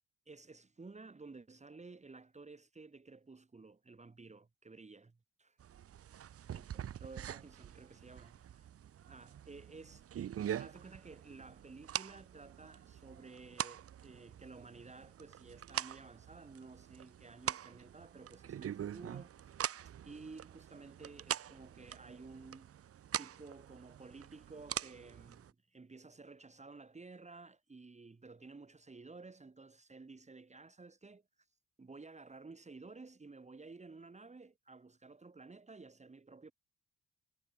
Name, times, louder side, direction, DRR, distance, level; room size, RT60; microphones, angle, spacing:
voice 1, 0.3-5.6 6.5-6.7 7.0-8.7 9.0-10.2 10.6-19.3 19.8-22.7 23.2-31.5 31.8-36.5, right 3 dB, 25° right, 2.9 m, -53 dB
sound 1, 5.6-25.5, right 10 dB, 50° right, 0.9 m, -44 dB
cardioid pair, 90°, 30 cm